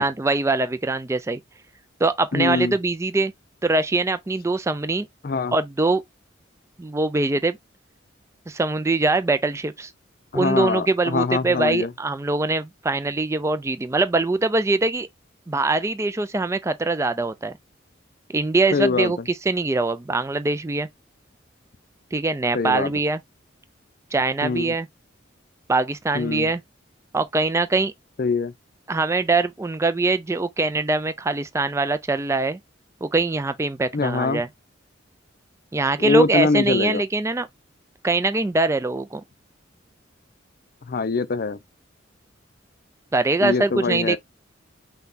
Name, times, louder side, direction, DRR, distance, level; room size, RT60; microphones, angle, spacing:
voice 1, 0.0-1.4 2.0-3.3 3.6-5.1 5.5-6.0 6.8-7.6 8.5-9.9 10.3-15.1 15.5-17.5 18.3-20.9 22.1-23.2 24.1-24.9 25.7-26.6 27.1-27.9 28.9-32.6 33.0-34.5 35.7-37.5 38.0-39.2 43.1-44.2, right 3 dB, 15° right, 0.3 m, -23 dB
voice 2, 2.3-2.7 5.2-5.5 10.3-11.9 18.7-19.1 22.5-22.9 24.4-24.7 26.1-26.5 28.2-28.5 33.9-34.4 36.0-37.0 40.9-41.6 43.4-44.2, left 3 dB, 50° left, 0.5 m, -23 dB
5.7 x 2.2 x 4.0 m
head